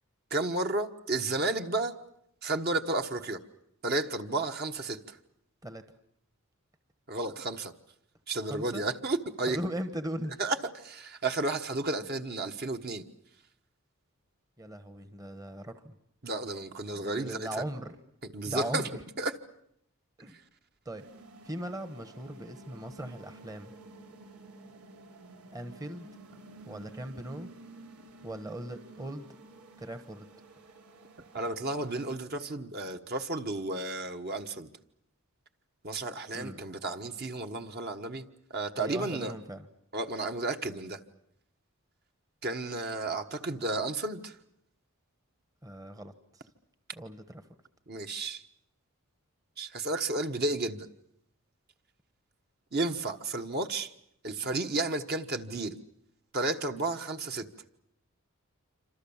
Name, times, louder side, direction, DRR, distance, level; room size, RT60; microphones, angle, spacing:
voice 1, 0.3-1.9 2.4-3.4 3.8-5.2 7.1-7.7 8.3-9.6 10.4-13.0 16.2-17.5 18.3-18.8 19.2-19.3 31.3-34.7 35.8-38.2 38.5-39.3 39.9-41.0 42.4-44.4 47.9-48.4 49.6-50.9 52.7-53.9 54.2-55.8 56.3-57.5, right 2 dB, 45° right, 5 dB, 1.3 m, -32 dB
voice 2, 8.5-8.9 9.5-10.4 12.0-12.1 14.6-16.0 16.9-18.0 18.5-18.9 20.2-20.4 20.8-21.1 21.4-23.7 25.5-26.1 26.7-27.5 28.2-29.3 29.8-30.3 36.3-36.6 38.8-39.7 45.6-46.5 46.9-47.5, right 1 dB, 15° right, 9 dB, 1.1 m, -39 dB
sound 1, 21.0-32.2, right 2 dB, 90° right, 3.5 m, -51 dB
27.5 x 26.0 x 7.2 m, 0.74 s
head